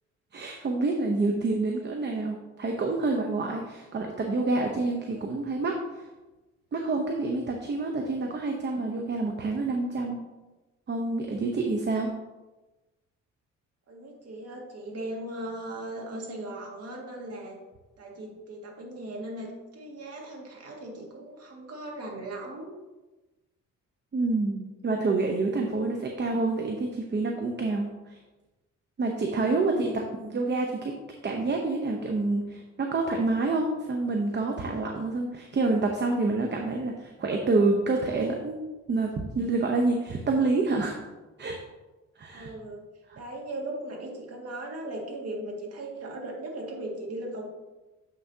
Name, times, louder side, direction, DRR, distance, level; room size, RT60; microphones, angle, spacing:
voice 1, 0.3-6.1 6.7-10.2 10.9-12.1 24.1-28.2 29.0-29.9 30.2-30.9 31.2-38.6 38.9-41.0 41.4-41.6 42.2-42.5 43.1-43.2, right 3 dB, 35° right, 2 dB, 0.8 m, -27 dB
voice 2, 5.0-5.4 13.9-17.6 18.0-22.7 29.5-30.1 42.3-42.8 43.1-47.5, right 1 dB, 55° right, -1 dB, 2.0 m, -38 dB
7.5 x 5.8 x 2.8 m, 1.1 s
cardioid pair, 90°, 30 cm